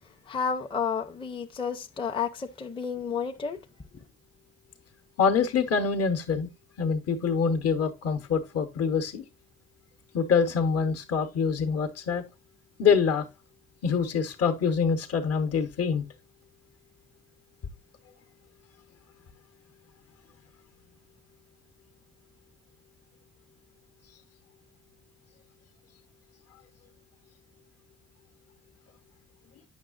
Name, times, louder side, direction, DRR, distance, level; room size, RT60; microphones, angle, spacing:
voice 1, 0.3-3.6 3.9-4.0, left 6 dB, 15° left, 0.5 m, -31 dB
voice 2, 5.2-6.5 6.8-9.2 10.1-12.2 12.8-13.2 13.8-16.0, left 6 dB, 55° left, 0.9 m, -25 dB
8.8 x 6.2 x 2.4 m
cardioid pair, 120°, 30 cm